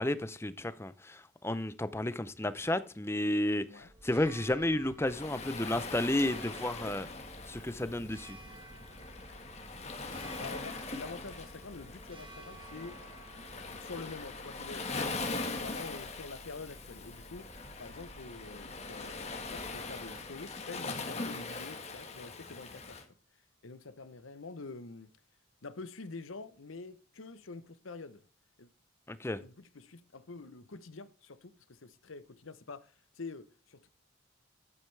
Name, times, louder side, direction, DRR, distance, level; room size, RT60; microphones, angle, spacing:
voice 1, 0.0-7.1 7.5-8.4 29.1-29.4, left 1 dB, 10° left, 0.5 m, -32 dB
Church bell, 3.8-21.0, right 2 dB, 25° right, 1.3 m, -53 dB
Waves surf, 5.1-23.0, left 3 dB, 30° left, 1.6 m, -41 dB
voice 2, 10.4-13.0 13.7-17.5 17.8-23.0 23.6-25.1 25.6-28.2 28.6-28.7 29.4-33.9, left 3 dB, 80° left, 0.9 m, -46 dB
11.0 x 8.7 x 3.3 m
head